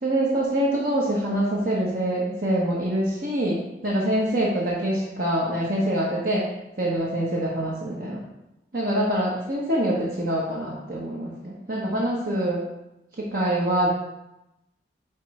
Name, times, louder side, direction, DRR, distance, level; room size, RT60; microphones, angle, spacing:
voice 1, 0.0-6.5 6.8-8.2 8.7-12.6 13.2-13.9, right 1 dB, 55° right, -5 dB, 1.1 m, -25 dB
9.2 x 3.2 x 4.8 m, 0.91 s
head